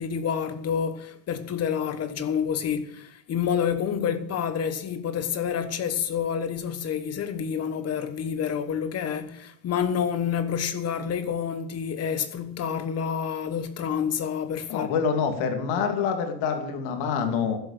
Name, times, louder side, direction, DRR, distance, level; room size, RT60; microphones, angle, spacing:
voice 1, 0.0-14.9 15.8-15.9, left 7 dB, 35° left, 1.3 m, -28 dB
voice 2, 14.7-17.6, left 6 dB, 90° left, 2.8 m, -26 dB
12.5 x 8.0 x 8.3 m
cardioid pair, 170°, 43 cm